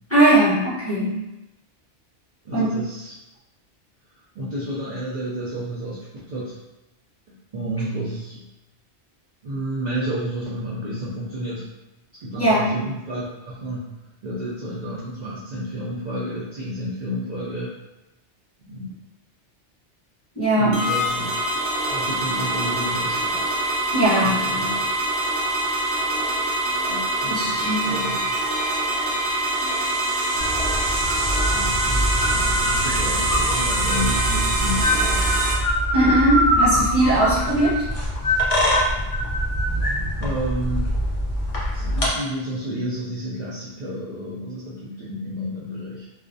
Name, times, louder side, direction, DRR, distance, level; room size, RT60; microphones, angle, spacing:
voice 1, 0.1-1.2 2.5-2.7 12.3-12.7 20.3-20.7 23.9-24.3 27.3-27.8 35.9-37.8, right 1 dB, 15° left, -12 dB, 0.9 m, -19 dB
voice 2, 2.4-3.1 4.3-6.6 7.5-8.4 9.4-11.7 12.2-17.8 18.6-18.9 20.6-21.4 21.9-23.6 24.2-24.9 26.9-28.3 31.5-35.5 36.7-36.9 37.3-37.9 38.3-38.5 40.2-41.1 41.7-46.1, equal, 50° right, -8 dB, 0.5 m, -31 dB
sound 1, 20.7-35.5, right 1 dB, 85° right, 0.9 m, -24 dB
sound 2, 30.4-42.1, equal, 40° left, 0.5 m, -23 dB
2.4 x 2.0 x 2.6 m, 0.98 s
omnidirectional pair, 1.2 m